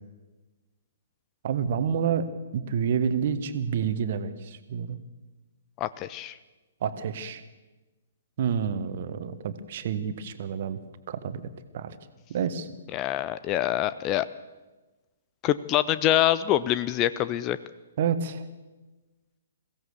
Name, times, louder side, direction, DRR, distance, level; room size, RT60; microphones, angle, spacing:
voice 1, 1.4-2.3 2.5-5.0 6.8-7.4 8.4-10.8 11.1-11.4 11.7-11.9 12.3-12.7 18.0-18.4, right 7 dB, 45° right, 11 dB, 1.5 m, -28 dB
voice 2, 5.8-6.4 12.9-14.3 15.4-17.6, left 13 dB, 25° left, 15 dB, 0.6 m, -25 dB
22.5 x 16.5 x 7.0 m, 1.2 s
figure-of-eight pair, 125°, 0 cm